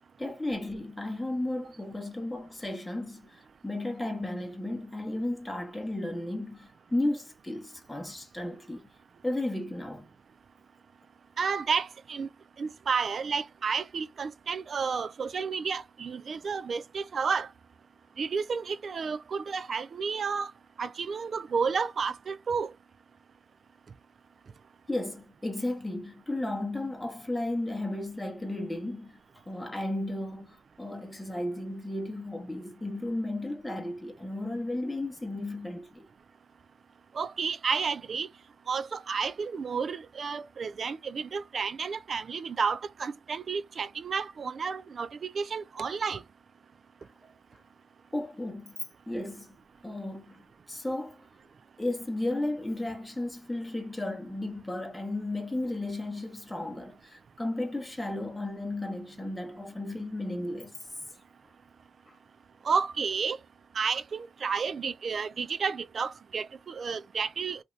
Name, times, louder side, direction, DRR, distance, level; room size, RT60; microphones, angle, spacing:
voice 1, 0.2-8.9 9.2-10.1 24.9-29.2 29.5-36.1 47.0-47.6 48.1-48.8 49.1-49.6 49.8-51.2 51.8-60.7 62.1-62.2, left 1 dB, 10° left, 1.0 m, -34 dB
voice 2, 11.4-12.3 12.6-17.5 18.2-20.5 20.8-22.7 37.2-38.3 38.7-46.2 62.7-63.4 63.8-67.6, right 5 dB, 55° right, 0.4 m, -31 dB
2.7 x 2.5 x 3.1 m
cardioid pair, 70°, 0 cm